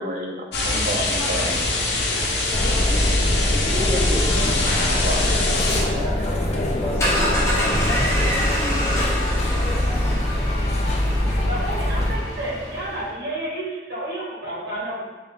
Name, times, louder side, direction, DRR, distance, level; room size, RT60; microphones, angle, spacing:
voice 1, 0.0-1.8 5.0-5.2 11.0-11.1, right 1 dB, 45° right, 1 dB, 0.5 m, -30 dB
sound 1, 0.5-5.8, left 2 dB, 75° left, 0.7 m, -23 dB
sound 2, 2.5-12.2, left 1 dB, 35° left, 0.4 m, -23 dB
voice 2, 2.6-4.2 5.9-7.5 7.8-9.1 9.7-10.4, left 1 dB, 30° right, -6 dB, 0.9 m, -33 dB
sound 3, 6.8-13.1, equal, 15° left, 0.8 m, -27 dB
voice 3, 11.5-15.0, right 1 dB, 85° right, -7 dB, 1.4 m, -30 dB
3.8 x 2.1 x 3.9 m, 1.2 s
head